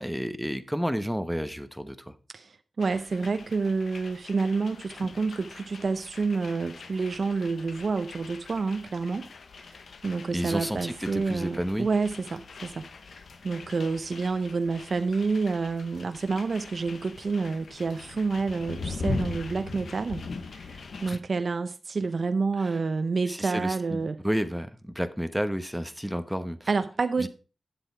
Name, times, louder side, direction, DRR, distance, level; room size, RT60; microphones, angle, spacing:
voice 1, 0.0-2.1 10.3-11.9 21.1-21.2 23.3-26.7 27.2-27.3, equal, ahead, 1.1 m, -31 dB
voice 2, 2.3-9.3 9.7-12.9 13.4-24.2 26.7-27.3, right 4 dB, 65° right, 0.7 m, -29 dB
sound 1, 2.8-21.2, left 4 dB, 80° left, 1.0 m, -41 dB
9.6 x 7.7 x 4.5 m
cardioid pair, 60°, 0 cm